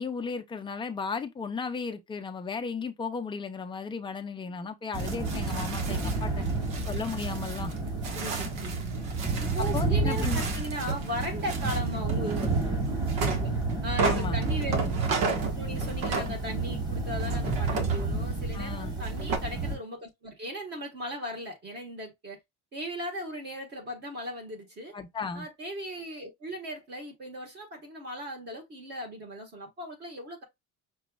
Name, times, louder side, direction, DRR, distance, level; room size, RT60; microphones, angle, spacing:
voice 1, 0.0-6.5 6.9-7.7 9.6-10.4 14.1-14.4 18.5-18.9 24.9-25.5, left 5 dB, 15° left, 0.4 m, -35 dB
sound 1, 4.9-19.8, right 3 dB, 10° right, 1.7 m, -30 dB
sound 2, 4.9-16.8 17.2-19.4, right 4 dB, 80° right, 1.5 m, -34 dB
voice 2, 6.1-6.5 8.1-9.0 9.4-12.5 13.2-13.5 13.8-15.0 15.6-22.4 22.7-24.9 25.3-30.4, equal, 30° right, 1.3 m, -37 dB
6.0 x 3.2 x 2.3 m
cardioid pair, 180°, 35 cm